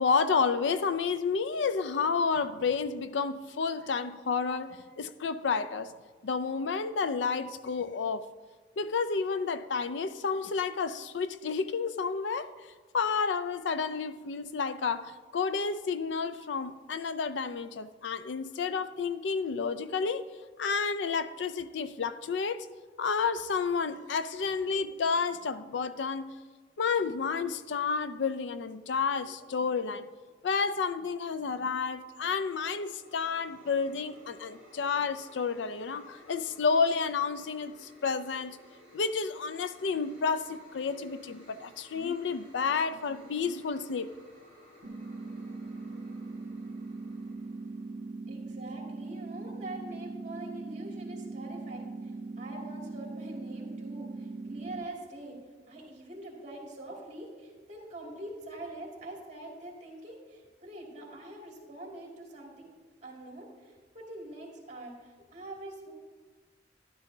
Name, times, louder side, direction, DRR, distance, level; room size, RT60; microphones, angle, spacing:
voice 1, 0.0-5.9 6.2-8.2 8.8-12.5 12.9-20.2 20.6-22.7 23.0-26.3 26.8-30.1 30.4-38.6 38.9-44.1, left 5 dB, 85° left, 0.4 m, -30 dB
sound 1, 31.8-48.2, equal, 35° left, 3.3 m, -57 dB
sound 2, 44.8-54.8, right 3 dB, 85° right, 0.8 m, -40 dB
voice 2, 48.2-55.4 55.7-62.7 63.0-65.9, right 1 dB, 40° right, 2.4 m, -44 dB
12.0 x 11.5 x 2.7 m
head